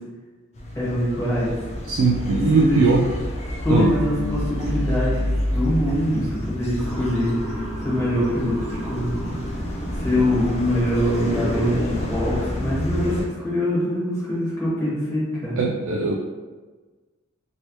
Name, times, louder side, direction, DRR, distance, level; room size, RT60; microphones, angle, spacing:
sound 1, 0.5-13.3, left 1 dB, 30° left, 0.5 m, -29 dB
voice 1, 0.7-1.5 2.5-2.9 3.6-8.6 8.8-9.4 9.9-15.6, equal, 15° left, -9 dB, 1.3 m, -24 dB
voice 2, 1.9-3.0 3.7-3.9 10.2-10.3 15.6-16.2, right 3 dB, 75° right, 0 dB, 0.3 m, -19 dB
sound 2, 3.8-7.1 7.3-7.4, left 5 dB, 85° left, 0.7 m, -37 dB
Motor vehicle (road) / Siren, 6.8-10.9, equal, 5° right, 0.7 m, -35 dB
3.0 x 2.7 x 3.0 m, 1.3 s
head